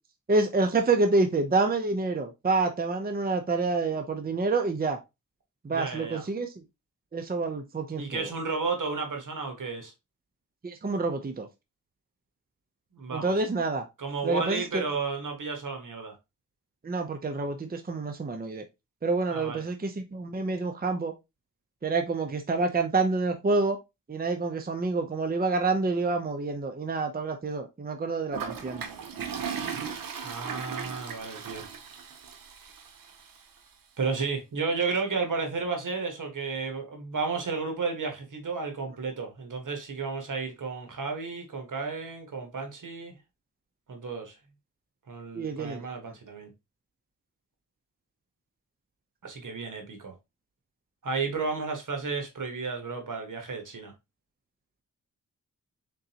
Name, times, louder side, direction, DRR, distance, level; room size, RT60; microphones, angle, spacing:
voice 1, 0.3-5.0 5.6-6.5 7.1-8.3 10.6-11.5 13.1-13.8 14.2-14.8 16.8-18.6 19.0-21.1 21.8-23.8 24.1-28.8 45.3-45.9, right 3 dB, 30° right, 0.7 m, -27 dB
voice 2, 5.7-6.2 8.0-9.9 12.9-13.3 14.0-16.2 19.3-19.6 30.2-31.6 34.0-43.1 43.9-44.3 45.1-46.5 49.2-50.1 51.0-53.9, right 4 dB, 70° right, 1.4 m, -32 dB
Toilet flush, 28.3-33.4, right 7 dB, 90° right, 0.7 m, -37 dB
3.9 x 3.7 x 2.8 m
cardioid pair, 55°, 33 cm